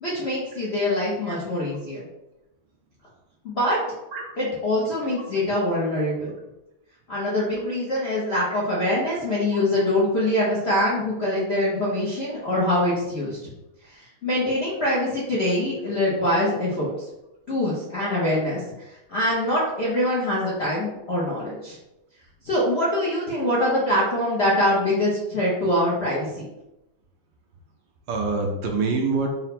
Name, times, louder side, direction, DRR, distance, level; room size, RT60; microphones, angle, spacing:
voice 1, 0.0-2.0 3.4-3.8 4.4-6.3 7.1-13.5 13.9-16.9 17.5-21.8 22.4-26.3, left 1 dB, 60° left, -7 dB, 0.6 m, -24 dB
voice 2, 8.1-8.6 9.5-9.6 16.1-16.2 20.4-20.5 23.4-23.5 28.1-29.3, right 4 dB, 70° right, 1 dB, 1.2 m, -27 dB
4.1 x 2.1 x 4.1 m, 0.93 s
omnidirectional pair, 2.3 m